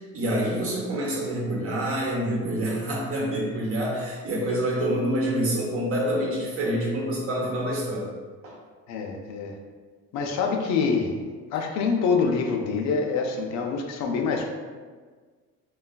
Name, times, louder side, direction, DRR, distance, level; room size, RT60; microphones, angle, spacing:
voice 1, 0.0-8.1 8.4-8.5, right 1 dB, 50° right, -3 dB, 0.9 m, -27 dB
voice 2, 8.9-9.5 10.1-11.1 11.5-14.5, left 5 dB, 65° left, 2 dB, 0.5 m, -25 dB
3.1 x 2.3 x 2.2 m, 1.5 s
cardioid pair, 115°, 29 cm